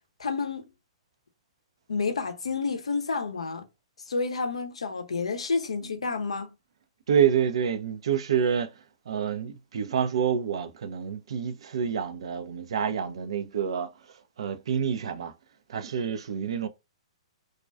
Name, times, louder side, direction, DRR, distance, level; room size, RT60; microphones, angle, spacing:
voice 1, 0.2-0.7 1.9-3.6 4.1-6.5, left 4 dB, 75° left, 0.6 m, -30 dB
voice 2, 7.1-8.7 9.1-13.9 14.4-15.3 15.7-16.7, right 7 dB, 65° right, 0.4 m, -27 dB
2.3 x 2.2 x 2.4 m
figure-of-eight pair, 115°, 3 cm